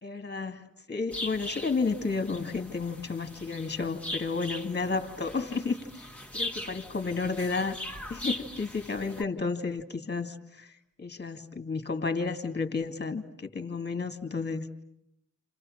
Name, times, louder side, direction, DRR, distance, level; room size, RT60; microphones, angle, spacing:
voice 1, 0.0-7.8 8.1-10.7 11.0-14.7, left 4 dB, 30° left, 7 dB, 2.2 m, -32 dB
sound 1, 1.1-9.2, left 1 dB, 5° left, 1.7 m, -40 dB
29.0 x 28.5 x 6.5 m, 0.78 s
wide cardioid pair, 155°, 35 cm